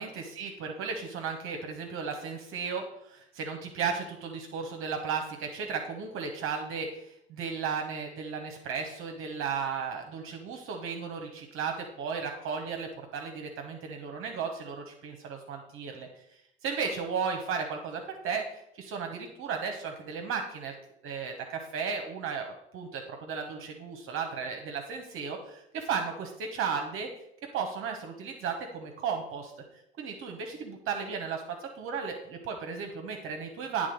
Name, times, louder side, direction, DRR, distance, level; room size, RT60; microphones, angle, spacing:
voice 1, 0.0-16.1 16.6-20.7 21.0-27.1 27.5-29.5 30.0-33.9, right 6 dB, 40° right, 4 dB, 0.9 m, -35 dB
9.1 x 3.6 x 5.1 m, 0.77 s
figure-of-eight pair, 65°, 33 cm